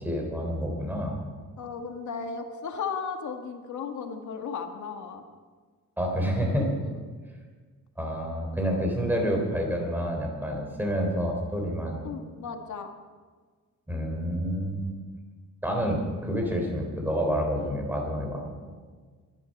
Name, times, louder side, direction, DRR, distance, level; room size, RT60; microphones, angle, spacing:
voice 1, 0.0-1.2 6.0-6.8 8.0-12.1 13.9-15.0 15.6-18.5, equal, 5° right, 1 dB, 3.5 m, -28 dB
voice 2, 1.6-5.2 6.8-7.0 12.0-12.9, left 5 dB, 60° left, 4 dB, 1.8 m, -35 dB
23.0 x 11.0 x 5.3 m, 1.5 s
wide cardioid pair, 180°, 34 cm